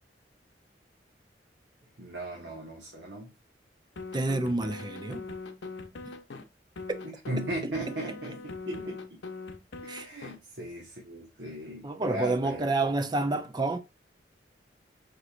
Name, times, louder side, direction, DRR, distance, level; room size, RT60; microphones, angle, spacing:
voice 1, 2.0-3.3 7.0-8.9 9.8-13.0, right 1 dB, 75° right, 1.3 m, -37 dB
sound 1, 4.0-6.4 6.8-10.4, left 3 dB, 75° left, 0.7 m, -41 dB
voice 2, 4.1-5.2 7.4-7.9 9.9-10.1 11.8-13.8, right 2 dB, 25° right, 0.5 m, -29 dB
5.0 x 3.2 x 2.4 m
head